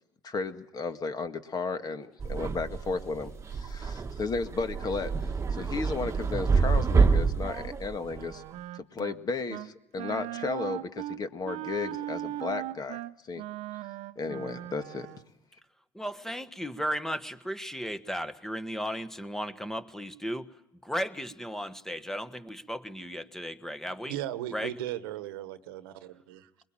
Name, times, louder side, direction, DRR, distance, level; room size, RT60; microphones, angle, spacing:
voice 1, 0.2-5.1 5.5-8.4 8.7-13.4 14.1-15.1, left 4 dB, 35° left, 9 dB, 1.9 m, -34 dB
sound 1, 2.2-8.3, right 5 dB, 25° right, 1.4 m, -27 dB
Wind instrument woodwind instrument, 8.0-9.2 9.5-9.7 10.0-15.3, right 15 dB, 65° right, 0.9 m, -38 dB
voice 2, 15.9-20.5 20.8-24.2 24.5-24.7, equal, 5° left, 12 dB, 1.3 m, -35 dB
voice 3, 24.1-26.5, right 12 dB, 85° right, 13 dB, 1.2 m, -37 dB
22.0 x 21.5 x 8.9 m, 0.85 s
supercardioid pair, 85°, 12 cm